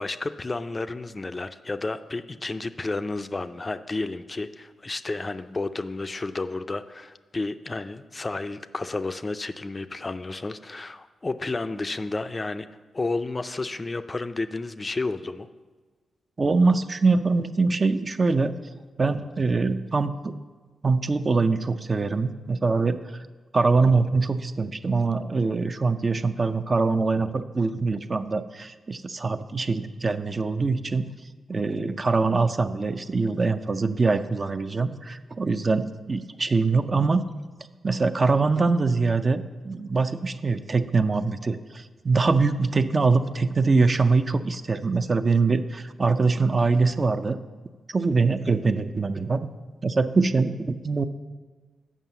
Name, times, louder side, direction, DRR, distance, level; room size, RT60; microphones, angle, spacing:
voice 1, 0.0-12.7 12.9-15.5, left 3 dB, 30° left, 10 dB, 0.4 m, -31 dB
voice 2, 16.4-18.6 19.0-20.3 20.8-23.0 23.5-31.0 31.5-37.2 37.8-47.4 47.9-49.5 49.8-51.0, right 4 dB, 40° right, 10 dB, 0.4 m, -23 dB
7.4 x 5.4 x 6.8 m, 1.3 s
cardioid pair, 65°, 0 cm